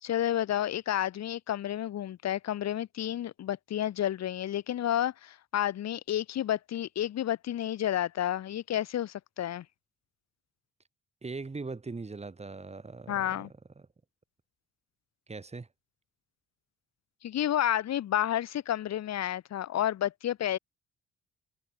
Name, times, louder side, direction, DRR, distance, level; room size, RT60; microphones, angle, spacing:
voice 1, 0.0-9.6 13.1-13.5 17.2-20.6, left 11 dB, 60° left, 1.2 m, -30 dB
voice 2, 11.2-13.5 13.8-13.9 15.3-15.7, right 3 dB, 20° right, 1.9 m, -40 dB
cardioid pair, 90°, 30 cm